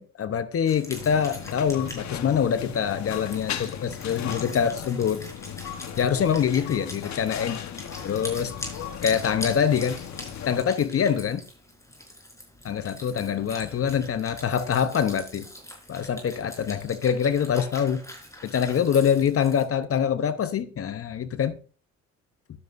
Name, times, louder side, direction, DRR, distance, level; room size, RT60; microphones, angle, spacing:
voice 1, 0.0-5.2 6.0-7.6 8.0-8.5 9.0-10.0 10.4-11.4 12.6-15.5 15.9-18.0 18.4-21.6, left 8 dB, 50° left, 0.8 m, -25 dB
Wind instrument woodwind instrument, 0.7-19.6, left 1 dB, 10° left, 4.7 m, -43 dB
sound 1, 0.9-10.6, left 8 dB, 65° left, 1.2 m, -36 dB
11.5 x 9.5 x 2.6 m
cardioid pair, 90°, 30 cm